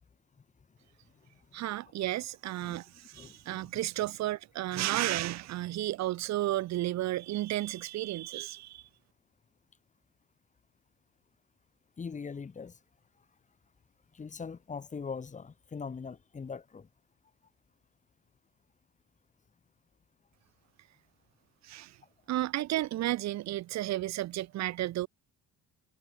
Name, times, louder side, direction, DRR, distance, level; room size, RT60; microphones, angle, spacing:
voice 1, 1.5-8.8 21.6-22.0 22.3-25.1, right 15 dB, 65° right, 4.7 m, -33 dB
voice 2, 3.1-3.6 4.7-4.8 12.0-12.8 14.1-16.9, left 5 dB, 25° left, 6.9 m, -41 dB
cardioid pair, 145°, 29 cm